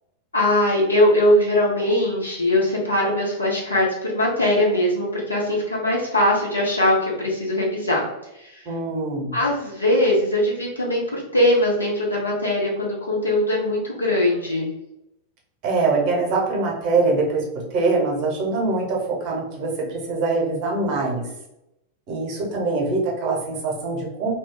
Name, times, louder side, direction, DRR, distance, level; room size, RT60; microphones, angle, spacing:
voice 1, 0.3-8.1 8.4-8.7 9.3-14.7, left 1 dB, 80° left, -3 dB, 0.9 m, -21 dB
voice 2, 8.6-9.3 15.6-21.2 22.1-24.3, right 3 dB, 40° right, -1 dB, 0.9 m, -23 dB
2.4 x 2.3 x 3.6 m, 0.86 s
figure-of-eight pair, 90°, 0 cm